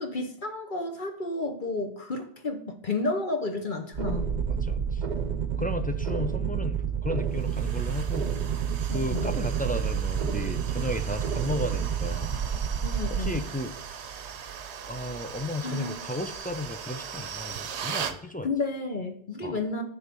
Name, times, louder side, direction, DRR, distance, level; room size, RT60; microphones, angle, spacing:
voice 1, 0.0-4.3 8.9-9.3 12.8-13.4 15.6-16.0 18.4-19.8, left 3 dB, 50° left, 4 dB, 1.1 m, -31 dB
sound 1, 3.9-13.4, right 7 dB, 50° right, 0.8 m, -29 dB
voice 2, 4.5-5.0 5.6-8.4 8.9-12.4 13.1-14.0 14.9-18.5 19.4-19.6, left 1 dB, 10° left, 6 dB, 0.4 m, -34 dB
sound 2, 7.3-18.2, right 7 dB, 85° right, 1.0 m, -39 dB
9.8 x 3.7 x 6.8 m, 0.65 s
omnidirectional pair, 1.1 m